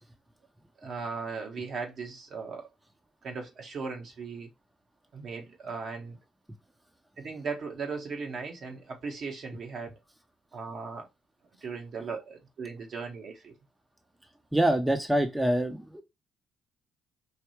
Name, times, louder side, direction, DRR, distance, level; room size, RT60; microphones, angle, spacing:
voice 1, 0.8-2.7 3.2-4.5 5.1-6.2 7.2-10.0 10.5-11.1 11.6-13.5, right 4 dB, 60° right, 1.3 m, -37 dB
voice 2, 14.5-16.0, right 1 dB, 10° right, 0.8 m, -25 dB
4.7 x 2.7 x 3.1 m
hypercardioid pair, 55°, 0 cm